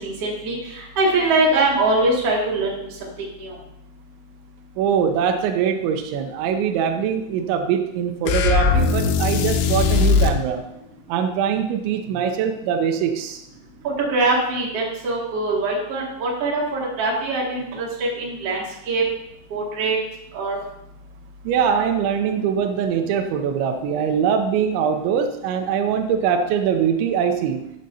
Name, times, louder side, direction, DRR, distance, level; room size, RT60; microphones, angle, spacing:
voice 1, 0.0-3.1 3.4-3.6 13.8-19.0 19.5-20.0 20.3-20.6, right 2 dB, 40° right, -4 dB, 2.3 m, -23 dB
voice 2, 4.8-10.6 11.1-13.4 21.4-27.7, right 7 dB, 80° right, 5 dB, 2.7 m, -22 dB
sound 1, 8.3-10.4, left 5 dB, 85° left, 3.2 m, -19 dB
14.0 x 7.5 x 2.7 m, 0.81 s
omnidirectional pair, 5.9 m